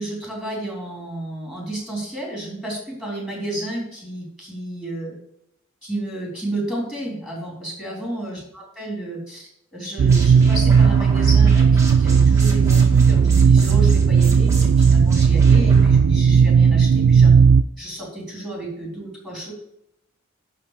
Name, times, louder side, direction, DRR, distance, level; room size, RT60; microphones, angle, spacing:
voice 1, 0.0-5.1 5.8-17.3 17.8-19.5, right 1 dB, ahead, -3 dB, 3.5 m, -31 dB
sound 1, 10.0-17.6, right 6 dB, 70° right, 0.3 m, -15 dB
sound 2, 10.1-16.0, right 2 dB, 15° right, 1.9 m, -37 dB
11.5 x 4.0 x 7.4 m, 0.77 s
head